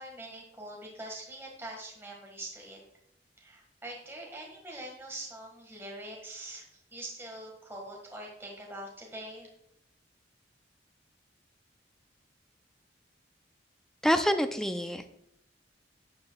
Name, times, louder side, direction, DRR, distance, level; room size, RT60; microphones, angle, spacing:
voice 1, 0.0-2.8 3.4-6.7 6.9-9.5, right 1 dB, 15° right, -2 dB, 1.7 m, -43 dB
voice 2, 14.0-15.1, equal, 5° left, 7 dB, 0.5 m, -27 dB
11.5 x 6.9 x 2.3 m, 0.74 s
head